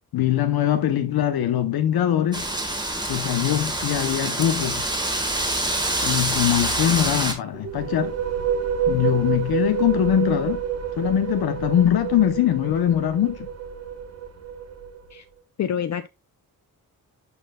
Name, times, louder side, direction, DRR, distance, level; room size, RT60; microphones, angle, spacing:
voice 1, 0.1-2.4 3.1-4.8 6.0-8.1 8.9-10.6 11.0-13.5, left 11 dB, 85° left, 0.8 m, -22 dB
Wind, 2.3-7.3, right 1 dB, 10° right, 1.5 m, -26 dB
sound 1, 7.5-15.2, right 7 dB, 45° right, 1.0 m, -28 dB
voice 2, 15.6-16.1, left 9 dB, 50° left, 0.5 m, -26 dB
12.0 x 4.4 x 2.2 m
wide cardioid pair, 140°, 36 cm